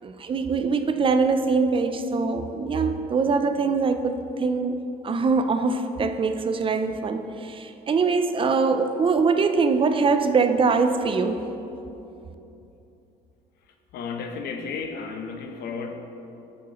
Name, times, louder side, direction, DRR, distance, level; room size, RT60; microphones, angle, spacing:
voice 1, 0.0-4.8 5.0-11.5, right 4 dB, 30° right, 8 dB, 0.5 m, -23 dB
voice 2, 13.9-15.9, left 5 dB, 75° left, 5 dB, 0.9 m, -33 dB
11.0 x 7.1 x 3.0 m, 2.9 s
cardioid pair, 110°, 17 cm